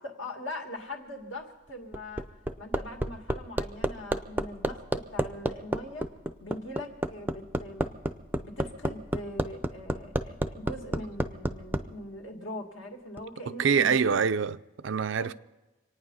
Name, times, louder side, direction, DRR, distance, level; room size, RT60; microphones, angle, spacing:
voice 1, 0.0-2.3 2.6-6.1 6.4-7.9 8.4-13.9 15.2-15.3, left 1 dB, 70° left, 2.4 m, -41 dB
Hammer, 1.7-11.8 13.2-13.3, right 1 dB, 10° right, 0.5 m, -29 dB
voice 2, 13.6-15.3, right 6 dB, 70° right, 0.5 m, -25 dB
26.0 x 9.4 x 5.5 m
head